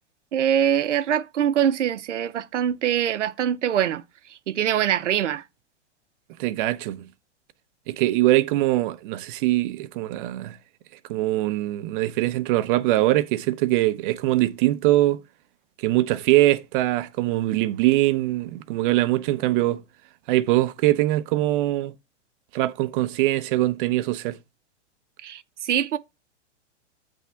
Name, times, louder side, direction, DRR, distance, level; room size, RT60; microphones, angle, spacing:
voice 1, 0.3-4.0 4.3-5.4 25.2-26.0, right 10 dB, 80° right, 0.8 m, -23 dB
voice 2, 6.4-7.1 7.9-10.6 11.1-15.2 15.8-19.8 20.3-21.9 22.5-24.4, right 16 dB, 45° right, 0.8 m, -22 dB
8.2 x 3.6 x 5.6 m
hypercardioid pair, 120°, 36 cm